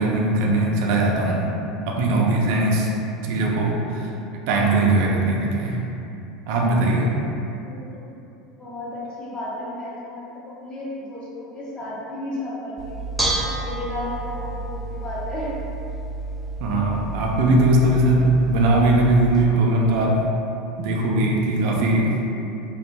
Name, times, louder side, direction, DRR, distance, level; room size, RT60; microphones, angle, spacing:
voice 1, 0.0-1.5 1.9-2.9 3.2-4.1 4.5-5.8 6.5-7.1 16.6-20.3 20.8-22.2, right 2 dB, 65° right, -1 dB, 0.3 m, -20 dB
voice 2, 7.5-8.1 8.6-12.9 13.4-15.5, left 1 dB, 30° left, -7 dB, 0.8 m, -33 dB
Bell / Dishes pots and pans, 12.8-19.4, right 2 dB, ahead, 0.4 m, -30 dB
2.6 x 2.4 x 2.2 m, 2.8 s
hypercardioid pair, 90°, 3 cm